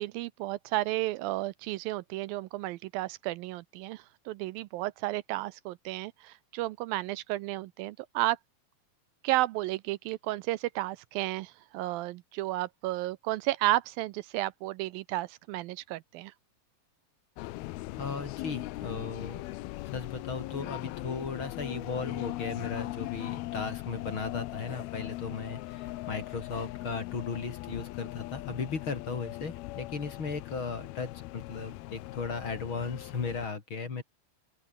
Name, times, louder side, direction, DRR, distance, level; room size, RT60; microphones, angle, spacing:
voice 1, 0.0-8.4 9.2-16.3, right 17 dB, 80° right, 2.3 m, -32 dB
sound 1, 17.4-33.5, left 18 dB, 85° left, 2.7 m, -40 dB
voice 2, 18.0-19.4 19.9-34.0, left 4 dB, 35° left, 3.3 m, -36 dB
open air
omnidirectional pair, 4.3 m